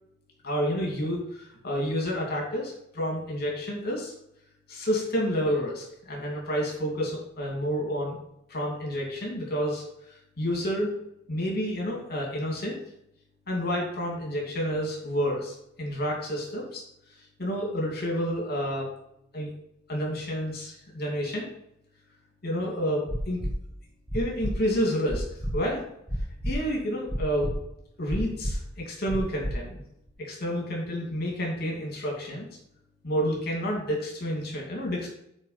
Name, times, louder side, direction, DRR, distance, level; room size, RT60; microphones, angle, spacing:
voice 1, 0.4-4.1 4.7-8.2 8.5-9.8 10.4-10.9 11.3-12.8 13.5-16.8 17.4-18.9 19.3-19.5 19.9-21.5 22.4-23.4 24.1-25.2 25.5-25.8 26.4-27.5 28.0-29.8 30.2-32.5 33.0-35.1, equal, 55° left, -1 dB, 2.7 m, -29 dB
sound 1, 23.1-23.5 24.1-24.5 25.1-25.5 26.1-26.5 27.1-27.5 28.1-28.5 29.1-29.5 30.1-30.2, equal, 15° right, 1.1 m, -30 dB
9.0 x 4.9 x 5.9 m, 0.77 s
head